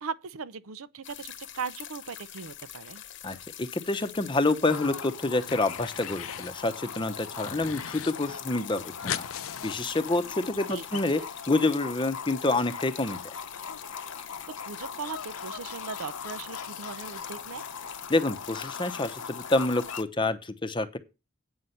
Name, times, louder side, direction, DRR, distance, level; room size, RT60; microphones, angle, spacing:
voice 1, 0.0-3.0 10.7-11.2 14.2-17.6, right 5 dB, 75° right, 0.6 m, -39 dB
sound 1, 1.0-20.0, left 11 dB, 55° left, 1.0 m, -44 dB
voice 2, 3.2-9.3 9.6-11.2 11.5-13.2 18.1-21.0, left 2 dB, 20° left, 0.8 m, -27 dB
sound 2, 4.3-5.0 5.3-6.6 6.9-8.1 8.4-8.5 8.7-10.6, left 10 dB, 70° left, 0.5 m, -39 dB
sound 3, 4.7-20.0, left 6 dB, 85° left, 0.9 m, -41 dB
8.7 x 5.7 x 7.9 m
head